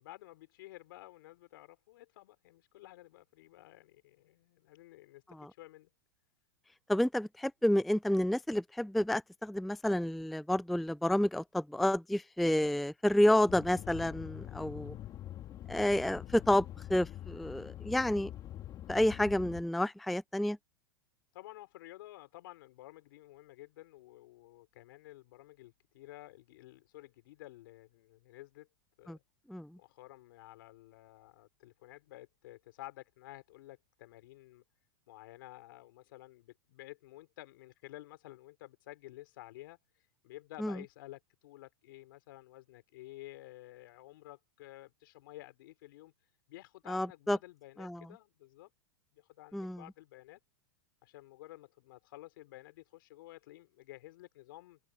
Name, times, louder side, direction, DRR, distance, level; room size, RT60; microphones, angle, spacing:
voice 1, 0.0-5.9 21.3-28.7 29.0-29.2 29.8-34.6 35.1-39.8 40.2-46.1 46.5-48.7 49.1-50.4 51.0-54.8, left 17 dB, 65° left, 4.8 m, -52 dB
voice 2, 6.9-14.9 15.7-16.6 16.9-18.3 18.9-20.6 29.1-29.2 29.5-29.7 40.6-40.7 46.9-47.4 47.8-48.0 49.5-49.8, left 1 dB, ahead, 0.3 m, -29 dB
sound 1, 13.5-19.6, left 12 dB, 30° left, 2.2 m, -45 dB
supercardioid pair, 135°, 12 cm